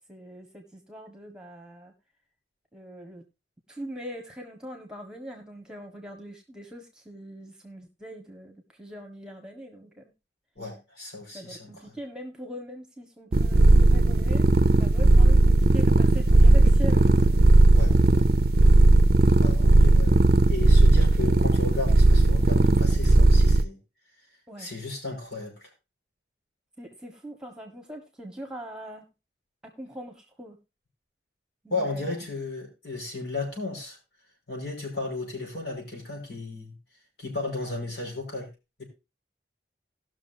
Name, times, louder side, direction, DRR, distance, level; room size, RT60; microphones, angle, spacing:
voice 1, 0.1-1.9 2.7-3.2 3.7-10.1 11.3-14.5 14.8-17.3 24.5-24.7 26.8-29.1 29.6-30.6 31.6-32.1, equal, 5° right, 3 dB, 1.5 m, -42 dB
voice 2, 10.6-11.7 17.7-18.2 19.4-20.2 20.5-23.8 24.6-25.7 31.7-34.0 34.5-36.7 37.2-38.5 38.8-38.9, left 3 dB, 65° left, 0 dB, 5.5 m, -34 dB
sound 1, 13.3-23.6, right 2 dB, 55° right, 0.6 m, -17 dB
19.0 x 6.4 x 2.8 m, 0.27 s
head